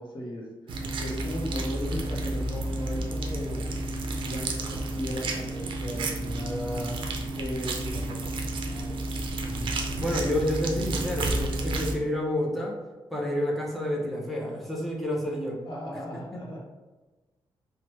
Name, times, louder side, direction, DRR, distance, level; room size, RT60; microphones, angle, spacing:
voice 1, 0.0-3.7 4.2-7.0 7.3-8.3 8.7-8.9 15.7-16.6, equal, 60° left, -2 dB, 0.7 m, -37 dB
sound 1, 0.7-11.9, right 2 dB, 60° right, 0.4 m, -31 dB
voice 2, 9.4-9.7 10.0-12.8 13.1-15.6, left 1 dB, ahead, -3 dB, 0.5 m, -29 dB
3.1 x 2.1 x 3.0 m, 1.2 s
wide cardioid pair, 140°, 9 cm